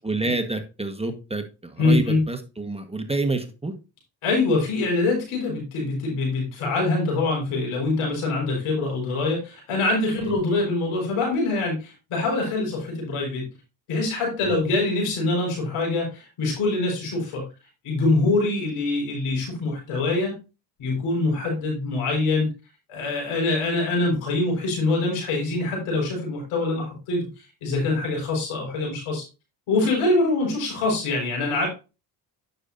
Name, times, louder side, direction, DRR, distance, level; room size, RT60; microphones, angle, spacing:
voice 1, 0.0-3.7 10.2-10.3 14.4-14.6, right 3 dB, 10° right, 6 dB, 1.4 m, -28 dB
voice 2, 1.8-2.2 4.2-13.5 13.9-17.5 17.8-20.4 20.8-22.5 22.9-27.3 27.6-29.2 29.7-31.7, left 2 dB, 85° left, 0 dB, 4.7 m, -24 dB
9.6 x 6.7 x 2.6 m, 0.29 s
supercardioid pair, 65°, 49 cm